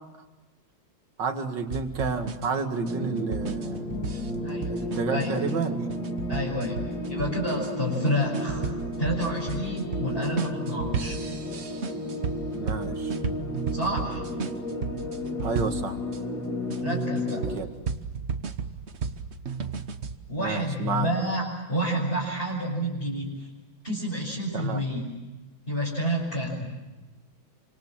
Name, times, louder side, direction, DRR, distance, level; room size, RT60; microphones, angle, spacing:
voice 1, 1.2-3.8 4.7-5.8 12.6-13.1 15.4-16.0 17.5-17.7 20.4-21.1 24.5-24.8, right 5 dB, 60° right, 5 dB, 2.7 m, -30 dB
sound 1, 1.7-16.2 16.7-20.2, right 5 dB, 40° right, 1.2 m, -34 dB
sound 2, 2.8-17.6, left 1 dB, 50° left, 3.4 m, -33 dB
voice 2, 4.4-4.8 5.1-5.3 6.3-6.8 7.1-8.6 9.0-11.2 13.7-14.2 16.8-17.5 20.3-23.5 23.8-25.0 25.7-26.7, equal, 25° left, -6 dB, 7.2 m, -29 dB
29.0 x 26.0 x 7.5 m, 1.1 s
omnidirectional pair, 2.2 m